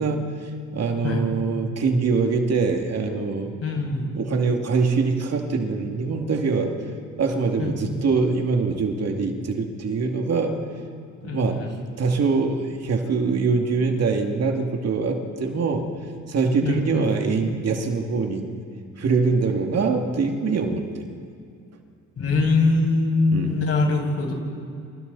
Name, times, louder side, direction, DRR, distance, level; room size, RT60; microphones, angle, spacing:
voice 1, 0.0-3.5 4.1-6.7 7.2-10.6 11.2-11.7 12.0-15.9 16.3-18.5 19.0-21.0 23.3-23.6, right 4 dB, 55° right, 3 dB, 2.6 m, -23 dB
voice 2, 3.6-4.2 7.6-8.0 11.2-11.7 16.6-17.0 22.2-24.3, left 3 dB, 50° left, 0 dB, 6.8 m, -23 dB
28.5 x 26.5 x 4.2 m, 2.4 s
cardioid pair, 90°, 30 cm